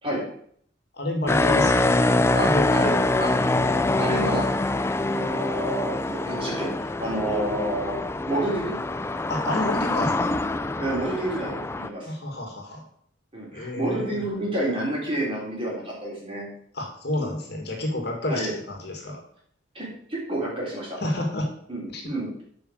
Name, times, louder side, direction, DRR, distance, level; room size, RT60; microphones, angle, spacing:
voice 1, 0.9-2.7 9.3-10.3 12.1-12.8 13.5-14.2 16.7-19.2 21.0-21.5 21.9-22.0, left 1 dB, 55° left, 2 dB, 2.1 m, -29 dB
sound 1, 1.3-11.9, left 2 dB, 15° left, 0.4 m, -24 dB
voice 2, 2.3-2.9 3.2-3.3 4.0-4.5 5.1-8.0 8.3-8.7 10.8-12.1 13.3-16.5 18.3-18.5 19.7-21.0 21.7-22.3, right 1 dB, 30° right, -4 dB, 3.8 m, -29 dB
8.3 x 5.3 x 6.4 m, 0.63 s
head